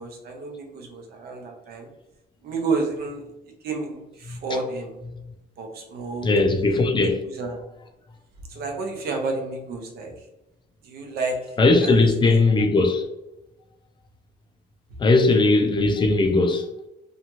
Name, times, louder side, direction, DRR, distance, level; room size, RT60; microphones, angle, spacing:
voice 1, 0.0-1.9 2.4-3.2 3.6-5.0 5.6-6.4 7.0-7.6 8.5-10.1 10.8-12.4, right 3 dB, 70° right, 3 dB, 0.7 m, -31 dB
voice 2, 6.2-7.2 11.6-13.1 15.0-16.7, left 3 dB, 30° left, 5 dB, 0.4 m, -19 dB
2.8 x 2.3 x 2.9 m, 0.93 s
cardioid pair, 110°, 17 cm